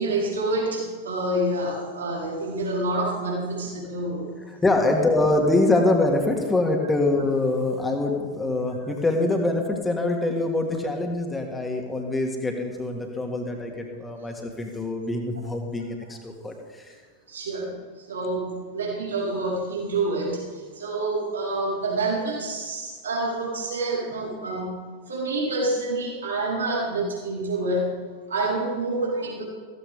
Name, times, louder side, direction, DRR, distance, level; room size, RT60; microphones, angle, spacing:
voice 1, 0.0-4.4 17.3-17.8 18.1-24.8 25.1-28.0 28.3-29.4, right 2 dB, 70° right, -4 dB, 4.4 m, -27 dB
voice 2, 4.6-16.9, left 2 dB, 10° left, 2 dB, 2.4 m, -24 dB
15.5 x 15.0 x 3.7 m, 1.5 s
figure-of-eight pair, 90°, 0 cm